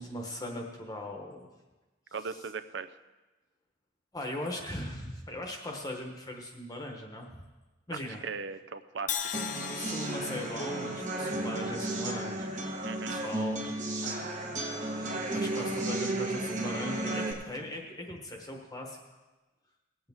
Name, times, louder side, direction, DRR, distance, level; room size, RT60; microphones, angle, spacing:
voice 1, 0.0-1.5 2.2-2.4 4.1-7.3 7.9-8.2 9.7-12.5 13.1-13.7 15.3-19.0, left 1 dB, 20° left, 1 dB, 1.0 m, -39 dB
voice 2, 2.1-2.9 7.9-9.2 12.8-13.2, right 5 dB, 65° right, 11 dB, 0.6 m, -38 dB
Crash cymbal, 9.1-13.1, left 8 dB, 40° left, 0.6 m, -40 dB
sound 1, 9.3-17.3, right 2 dB, 40° right, 1.2 m, -33 dB
18.5 x 8.4 x 3.5 m, 1.2 s
head